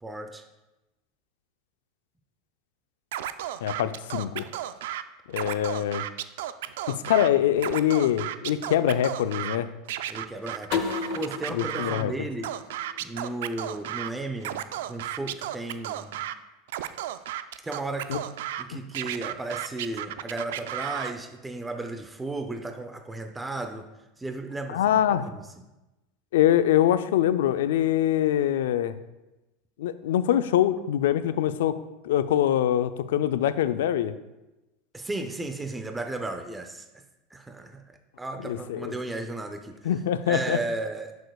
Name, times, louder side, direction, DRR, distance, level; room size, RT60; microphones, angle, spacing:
voice 1, 0.0-0.4 10.1-12.5 13.0-16.2 17.6-18.2 18.6-23.9 24.2-25.4 34.9-37.0 37.3-39.9 40.3-41.2, right 2 dB, 10° right, 6 dB, 0.5 m, -35 dB
Scratching (performance technique), 3.1-5.0 5.3-7.3 7.6-9.6 9.9-12.0 12.4-14.1 14.4-16.3 16.7-18.6 18.9-21.1, right 12 dB, 80° right, 0.3 m, -33 dB
voice 2, 3.6-4.5 5.3-6.0 6.9-9.7 11.5-12.1 18.1-18.2 18.7-18.8 24.7-25.3 26.3-29.0 29.8-31.7 32.0-34.1 38.4-38.9 39.8-40.6, left 11 dB, 90° left, 13 dB, 0.4 m, -24 dB
sound 1, 10.7-13.5, left 6 dB, 50° left, 0.8 m, -33 dB
11.0 x 6.3 x 2.3 m, 1.0 s
supercardioid pair, 130°, 0 cm